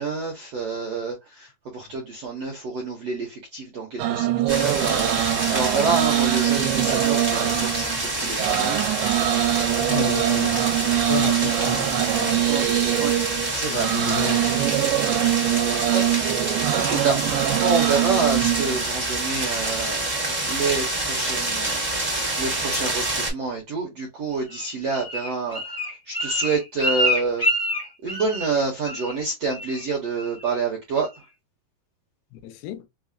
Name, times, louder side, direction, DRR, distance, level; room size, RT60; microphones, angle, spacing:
voice 1, 0.0-8.8 12.4-12.6 13.0-13.1 13.5-13.9 15.9-16.0 16.7-21.8 22.4-25.6 26.1-27.4 28.0-31.1, right 4 dB, 70° right, 1.5 m, -28 dB
sound 1, 4.0-18.8, right 14 dB, 90° right, 2.6 m, -23 dB
sound 2, 4.5-23.3, right 2 dB, 30° right, 0.6 m, -27 dB
voice 2, 9.8-12.4 13.7-15.4 32.3-32.9, left 11 dB, 85° left, 2.6 m, -34 dB
Bird, 24.5-28.6 28.8-29.2 29.5-29.8 30.2-30.6 31.0-31.1, equal, 40° left, 0.5 m, -27 dB
6.1 x 2.0 x 2.3 m
omnidirectional pair, 4.5 m